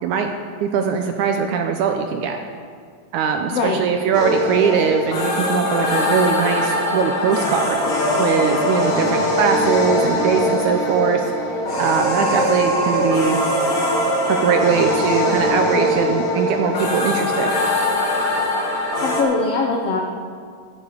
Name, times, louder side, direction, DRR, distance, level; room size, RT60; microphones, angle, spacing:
voice 1, 0.0-0.3 0.6-2.4 3.1-7.9 8.2-11.3 11.8-13.4 14.3-17.6, right 6 dB, 80° right, 4 dB, 1.8 m, -21 dB
sound 1, 4.1-19.2, left 1 dB, 45° left, 2.2 m, -21 dB
voice 2, 19.0-20.0, left 4 dB, 85° left, 1 dB, 1.3 m, -21 dB
15.5 x 8.7 x 5.0 m, 2.1 s
omnidirectional pair, 4.1 m